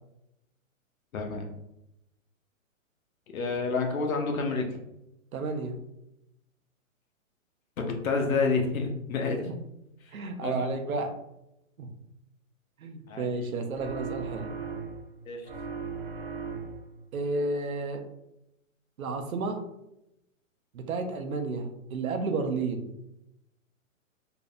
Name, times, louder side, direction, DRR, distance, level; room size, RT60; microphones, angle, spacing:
voice 1, 1.1-1.5 3.3-4.8 7.8-9.5 10.0-10.1 10.4-10.8 13.1-13.3 15.3-15.5, left 4 dB, 80° left, 3 dB, 0.7 m, -29 dB
voice 2, 5.3-5.8 9.5-9.6 10.1-11.1 11.8-11.9 12.8-14.5 17.1-18.0 19.0-19.6 20.7-22.9, right 3 dB, 90° right, 6 dB, 0.6 m, -32 dB
sound 1, 13.7-15.1 15.4-17.0, right 5 dB, 45° right, 0.5 m, -37 dB
2.6 x 2.1 x 2.4 m, 0.85 s
hypercardioid pair, 140°, 41 cm